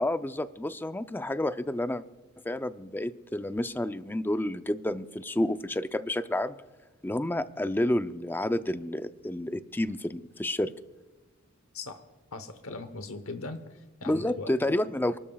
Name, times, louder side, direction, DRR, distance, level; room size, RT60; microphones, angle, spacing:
voice 1, 0.0-2.0 2.4-6.6 7.0-10.7 14.1-15.2, left 1 dB, 10° left, 11 dB, 0.5 m, -30 dB
voice 2, 12.3-14.8, left 3 dB, 90° left, 9 dB, 1.0 m, -40 dB
28.5 x 12.5 x 2.4 m, 1.2 s
head